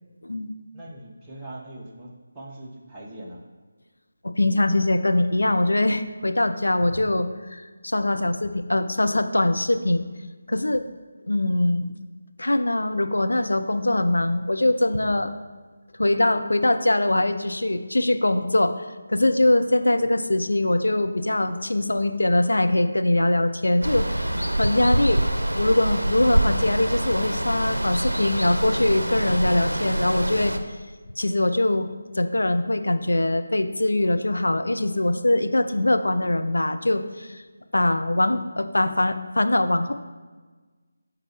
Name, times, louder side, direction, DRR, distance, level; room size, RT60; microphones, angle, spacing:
voice 1, 0.2-0.6 4.2-10.0 10.5-10.8 11.2-11.9 12.4-15.3 16.0-24.2 24.6-25.2 25.5-30.5 31.2-31.9 32.2-37.4 37.7-39.9, left 1 dB, 70° left, 8 dB, 0.4 m, -22 dB
voice 2, 0.7-3.4 19.5-19.7 19.9-20.1, right 1 dB, 10° right, -6 dB, 0.8 m, -41 dB
Water, 23.8-30.6, right 1 dB, 75° right, 0.6 m, -25 dB
11.5 x 3.9 x 2.9 m, 1.4 s
figure-of-eight pair, 155°, 0 cm